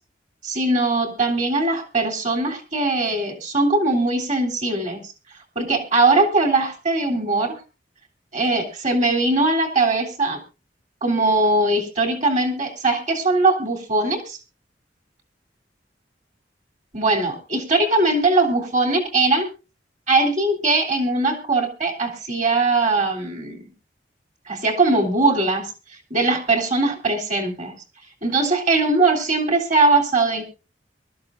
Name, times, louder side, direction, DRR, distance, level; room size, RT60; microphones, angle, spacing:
voice 1, 0.4-5.1 5.5-7.6 8.3-10.4 11.0-14.4 16.9-19.5 20.1-23.7 24.5-27.7 28.2-30.4, right 2 dB, 45° right, 3 dB, 3.2 m, -20 dB
23.5 x 13.0 x 2.5 m, 0.29 s
head